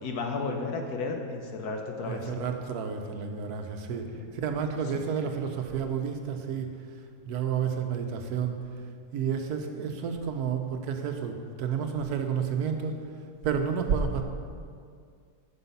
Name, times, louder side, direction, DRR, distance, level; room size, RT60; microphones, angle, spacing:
voice 1, 0.0-2.3 4.9-5.1, left 3 dB, 85° left, 3 dB, 1.5 m, -33 dB
voice 2, 2.0-6.7 7.3-8.6 9.1-13.0 13.4-14.2, right 6 dB, 85° right, 5 dB, 1.3 m, -30 dB
9.6 x 6.2 x 5.6 m, 2.2 s
omnidirectional pair, 1.6 m